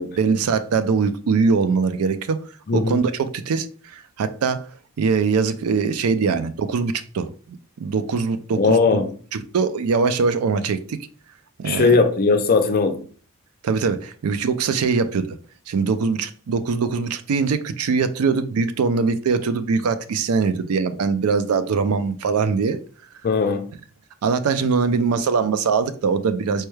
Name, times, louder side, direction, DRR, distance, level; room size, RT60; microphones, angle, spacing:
voice 1, 0.2-2.4 2.7-3.7 3.9-4.6 5.0-7.3 7.8-8.8 9.3-11.0 11.6-12.0 13.6-15.4 15.7-22.8 24.2-26.6, right 5 dB, 75° right, 0.4 m, -22 dB
voice 2, 2.7-3.1 8.6-9.1 11.6-13.0 23.2-23.7, left 4 dB, 45° left, 0.5 m, -19 dB
4.4 x 2.2 x 3.1 m
head